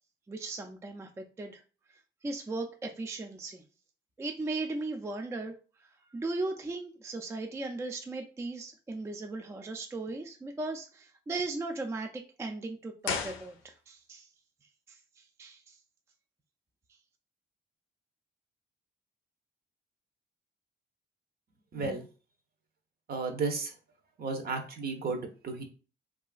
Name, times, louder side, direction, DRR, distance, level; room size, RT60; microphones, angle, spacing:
voice 1, 0.3-1.6 2.2-3.6 4.2-5.5 6.1-14.3 14.9-15.8, right 2 dB, 15° right, 4 dB, 0.3 m, -37 dB
sound 1, 13.0-14.1 14.4-14.5, left 6 dB, 90° left, 0.5 m, -36 dB
voice 2, 21.7-22.0 23.1-23.7 24.2-25.6, right 4 dB, 50° right, 5 dB, 0.7 m, -33 dB
2.8 x 2.4 x 2.3 m, 0.36 s
cardioid pair, 90°, 20 cm